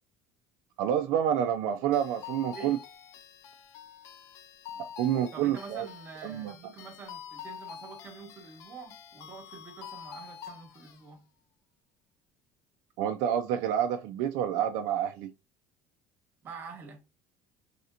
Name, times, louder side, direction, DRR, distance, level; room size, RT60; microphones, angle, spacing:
voice 1, 0.8-2.8 5.0-5.9 6.2-6.5 13.0-15.3, right 10 dB, 65° right, 0.4 m, -28 dB
sound 1, 1.9-11.0, left 8 dB, 55° left, 0.5 m, -47 dB
voice 2, 5.3-11.2 16.4-17.0, right 5 dB, 30° right, 1.1 m, -46 dB
3.3 x 2.8 x 2.4 m
cardioid pair, 160°, 6 cm